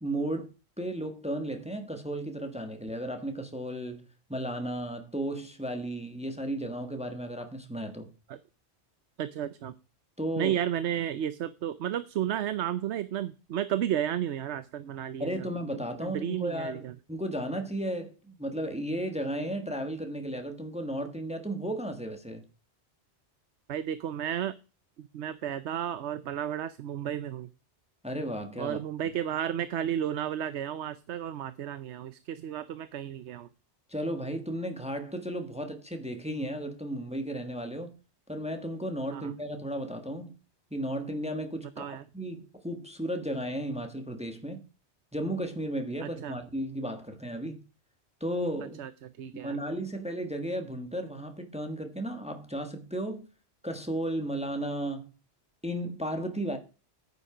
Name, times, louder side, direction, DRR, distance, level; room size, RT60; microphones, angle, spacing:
voice 1, 0.0-0.5 0.8-4.0 4.3-8.1 10.2-10.6 15.2-22.4 28.0-28.8 33.9-37.9 38.3-40.4 40.7-44.6 45.1-47.6 48.2-48.8 49.3-53.2 53.6-55.1 55.6-56.6, right 1 dB, 5° right, 1.4 m, -34 dB
voice 2, 9.2-9.7 10.4-15.5 15.7-16.9 23.7-24.5 25.0-27.5 28.6-33.5 39.1-39.3 41.8-42.0 46.0-46.3 48.8-48.9 49.2-49.6, right 10 dB, 85° right, 1.0 m, -33 dB
9.9 x 8.4 x 4.9 m
omnidirectional pair, 1.1 m